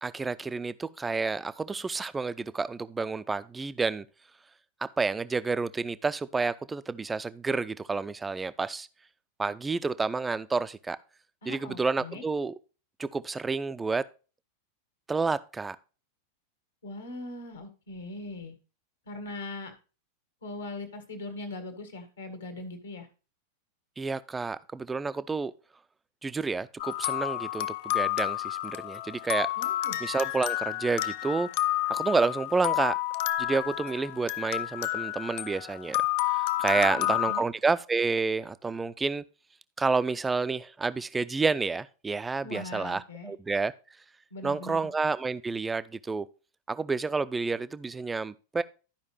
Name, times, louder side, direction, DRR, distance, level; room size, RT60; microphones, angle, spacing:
voice 1, 0.0-4.1 4.8-8.9 9.4-11.0 11.5-12.5 13.0-14.1 15.1-15.8 24.0-25.5 26.2-29.5 30.0-31.5 31.9-33.0 33.4-36.0 36.3-39.2 39.8-43.7 44.4-46.3 46.7-48.6, right 4 dB, 10° right, 0.4 m, -29 dB
voice 2, 11.4-12.2 16.8-18.6 19.1-19.7 20.4-23.1 29.6-30.0 36.8-37.4 42.4-43.3 44.3-44.9, left 2 dB, 70° left, 1.8 m, -40 dB
sound 1, 26.8-37.4, left 16 dB, 50° left, 0.4 m, -30 dB
13.0 x 5.1 x 3.2 m
figure-of-eight pair, 90°, 0 cm